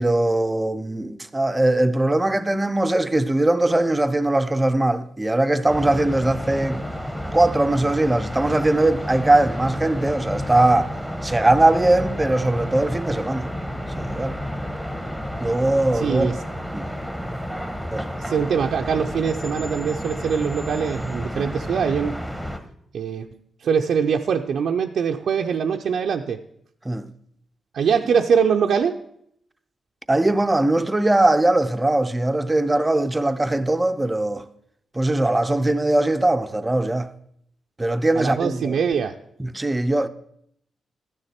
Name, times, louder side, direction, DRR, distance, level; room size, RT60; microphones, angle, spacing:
voice 1, 0.0-6.8 7.3-10.9 11.2-13.5 14.0-14.4 15.4-16.4 16.7-16.9 17.9-18.1 21.3-21.5 26.8-27.1 30.1-34.4 34.9-37.1 37.8-38.8 39.4-40.1, right 2 dB, 15° right, 0.5 m, -20 dB
sound 1, 5.7-22.6, equal, 5° left, 1.0 m, -31 dB
voice 2, 15.9-16.3 18.2-22.2 22.9-26.4 27.7-28.9 38.2-39.2, right 6 dB, 70° right, 0.5 m, -23 dB
13.0 x 9.7 x 4.3 m
wide cardioid pair, 140°, 0 cm